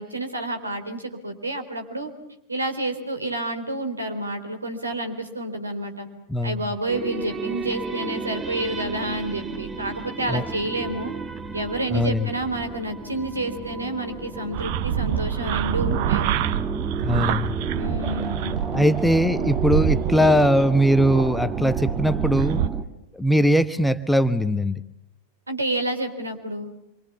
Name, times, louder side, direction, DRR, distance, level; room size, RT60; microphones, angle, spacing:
voice 1, 0.0-2.1 2.5-6.1 6.4-11.1 11.5-16.3 17.7-19.0 25.5-26.7, right 1 dB, 80° right, 6 dB, 3.8 m, -29 dB
voice 2, 6.3-6.7 10.3-10.4 11.9-12.3 17.0-17.5 18.7-22.6 23.1-24.8, equal, 5° left, 12 dB, 1.1 m, -20 dB
sound 1, 6.9-22.8, right 4 dB, 15° right, 1.8 m, -33 dB
sound 2, 14.5-22.7, right 9 dB, 50° right, 1.3 m, -26 dB
28.0 x 24.0 x 7.2 m, 0.84 s
figure-of-eight pair, 90°, 0 cm